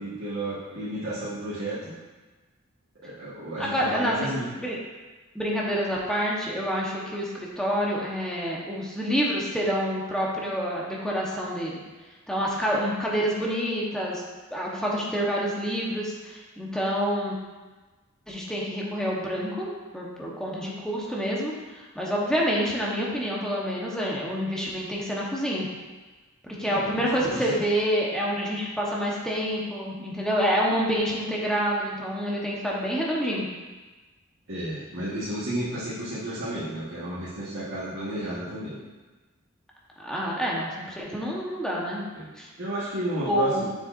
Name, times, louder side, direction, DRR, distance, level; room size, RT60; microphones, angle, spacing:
voice 1, 0.0-1.9 3.0-4.5 26.6-27.6 34.5-38.8 42.1-42.3 42.6-43.7, right 1 dB, 70° right, -11 dB, 1.6 m, -32 dB
voice 2, 3.6-4.3 4.6-4.8 5.3-11.8 12.3-14.2 14.5-17.3 18.3-19.7 19.9-25.7 26.4-33.5 40.0-40.7 41.0-42.0 42.4-42.5 43.3-43.7, equal, 5° left, -4 dB, 1.1 m, -27 dB
7.0 x 6.7 x 2.6 m, 1.3 s
head